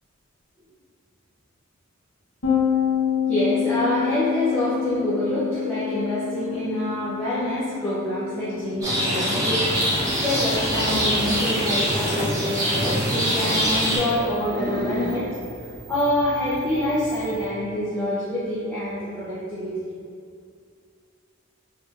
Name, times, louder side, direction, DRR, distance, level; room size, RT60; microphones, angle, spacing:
sound 1, 2.4-11.9, left 8 dB, 75° left, 0.8 m, -28 dB
voice 1, 3.3-9.6 9.9-15.3 15.9-19.8, equal, 10° left, -13 dB, 0.6 m, -26 dB
Rain, 8.8-14.0, equal, 15° right, 0.8 m, -23 dB
sound 2, 9.7-17.5, equal, 45° right, 0.4 m, -36 dB
3.9 x 2.7 x 2.4 m, 2.2 s
head